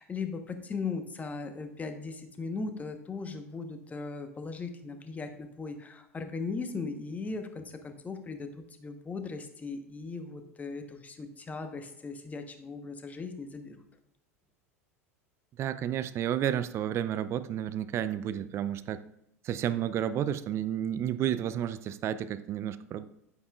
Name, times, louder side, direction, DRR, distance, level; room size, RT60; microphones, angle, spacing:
voice 1, 0.0-13.7, left 4 dB, 20° left, 7 dB, 1.0 m, -38 dB
voice 2, 15.6-19.0 19.4-23.0, right 10 dB, 35° right, 14 dB, 0.5 m, -31 dB
9.7 x 8.5 x 2.4 m, 0.74 s
figure-of-eight pair, 80°, 8 cm